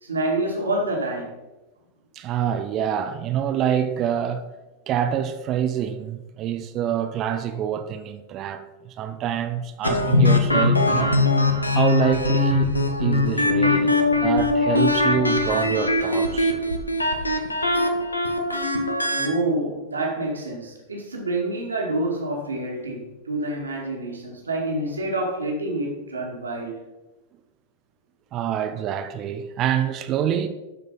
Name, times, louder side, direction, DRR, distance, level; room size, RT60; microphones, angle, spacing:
voice 1, 0.0-1.3 19.2-26.8, right 2 dB, 75° right, 2.2 m, -27 dB
voice 2, 2.2-4.5 4.9-11.2 11.7-12.7 13.0-13.9 14.2-16.5 28.3-30.5, right 9 dB, 35° right, 0.7 m, -26 dB
sound 1, 9.8-19.3, left 2 dB, 80° left, 1.0 m, -21 dB
12.5 x 5.2 x 4.1 m
figure-of-eight pair, 90°, 0 cm